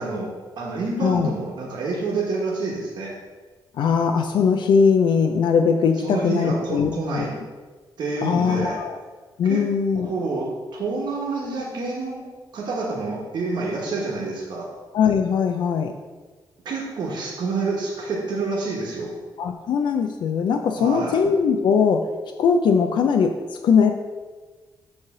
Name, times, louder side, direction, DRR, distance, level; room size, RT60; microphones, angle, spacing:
voice 1, 0.0-3.2 6.0-7.3 8.0-8.8 9.5-9.7 9.9-12.2 12.5-14.7 16.6-19.1 20.7-21.2, right 3 dB, 65° right, -3 dB, 1.2 m, -28 dB
voice 2, 1.0-1.3 3.7-7.3 8.2-9.0 9.4-10.1 14.9-15.9 19.4-22.1 22.4-23.4 23.6-23.9, left 6 dB, 70° left, 5 dB, 0.4 m, -20 dB
7.2 x 3.2 x 6.0 m, 1.3 s
wide cardioid pair, 155°, 8 cm